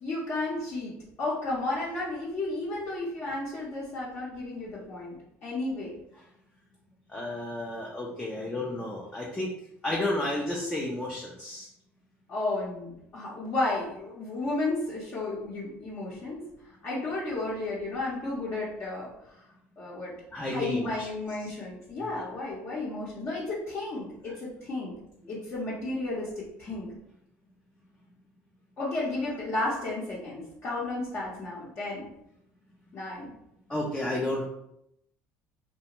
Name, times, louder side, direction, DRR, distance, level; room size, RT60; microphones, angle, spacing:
voice 1, 0.0-0.9 1.2-5.1 5.4-5.9 12.3-16.4 16.8-19.4 19.8-20.1 20.5-24.9 25.3-26.9 28.8-32.1 32.9-33.3, left 2 dB, 45° left, -7 dB, 0.8 m, -33 dB
voice 2, 7.1-9.5 9.8-11.7 20.3-21.1 21.4-21.5 33.7-34.4, left 1 dB, 15° left, -3 dB, 0.5 m, -32 dB
2.4 x 2.2 x 2.9 m, 0.80 s
supercardioid pair, 100°, 6 cm